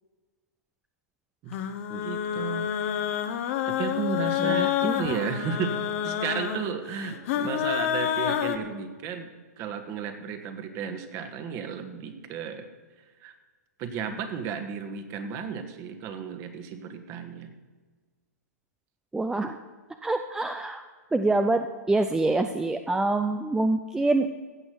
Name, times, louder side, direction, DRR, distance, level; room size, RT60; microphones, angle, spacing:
sound 1, 1.5-8.6, left 10 dB, 50° left, 1.1 m, -28 dB
voice 1, 1.9-2.7 3.7-9.3 9.6-12.6 13.2-13.3 13.8-17.5, right 6 dB, 35° right, 8 dB, 1.6 m, -33 dB
voice 2, 4.4-5.1 19.1-19.6 20.0-20.8 21.1-24.3, right 2 dB, 5° right, 7 dB, 0.5 m, -26 dB
15.5 x 6.1 x 7.7 m, 1.4 s
hypercardioid pair, 125°, 9 cm